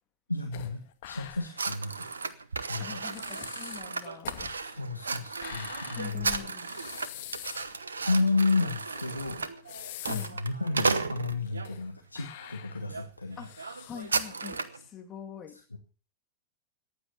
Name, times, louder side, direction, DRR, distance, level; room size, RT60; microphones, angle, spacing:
voice 1, 0.3-0.8 1.1-2.1 2.7-3.0 4.5-6.5 8.0-9.4 10.1-13.4 15.7-15.8, left 3 dB, 85° left, 4 dB, 1.4 m, -31 dB
sound 1, 0.5-1.7 2.0-2.1 2.7-2.8 3.1-7.8 8.2-8.3 8.9-10.5 10.9-11.0 11.4-11.9 12.1-14.3, left 13 dB, 50° left, 1.7 m, -45 dB
sound 2, 1.6-11.7 12.3-12.5 12.9-13.1 13.3-14.8, right 4 dB, 75° right, 1.1 m, -34 dB
voice 2, 2.8-4.3 6.0-6.7 10.0-10.4 13.4-13.5 13.8-15.6, left 8 dB, 30° left, 5 dB, 2.8 m, -44 dB
15.0 x 9.8 x 6.8 m, 0.39 s
figure-of-eight pair, 90°, 0 cm